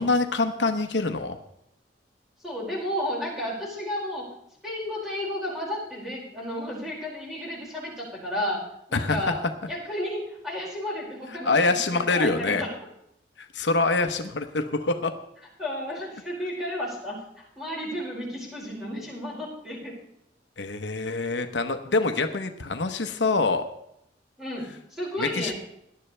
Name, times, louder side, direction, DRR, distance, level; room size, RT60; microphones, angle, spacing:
voice 1, 0.0-1.4 8.9-9.3 11.4-12.6 13.4-15.1 20.6-23.7 25.2-25.5, left 3 dB, 85° left, 7 dB, 0.9 m, -25 dB
voice 2, 2.4-4.3 4.6-8.6 8.9-9.4 9.7-12.7 15.6-17.2 17.6-19.9 24.4-25.6, left 1 dB, ahead, -5 dB, 5.4 m, -32 dB
18.0 x 11.5 x 3.3 m, 0.77 s
head